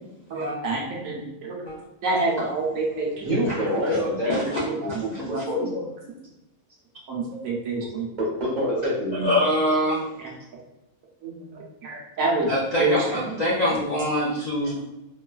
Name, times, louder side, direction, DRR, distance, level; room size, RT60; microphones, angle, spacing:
voice 1, 0.3-1.6 2.0-3.3 4.3-5.4 7.1-8.1 10.2-10.3 11.2-12.5 12.8-13.2, right 2 dB, 70° right, -1 dB, 1.0 m, -28 dB
voice 2, 3.2-4.4 4.8-5.9 8.2-9.5, equal, 35° right, -6 dB, 1.0 m, -26 dB
voice 3, 9.2-10.0 12.5-14.8, left 1 dB, 80° left, -6 dB, 0.3 m, -24 dB
3.0 x 2.2 x 2.3 m, 0.94 s
omnidirectional pair, 1.5 m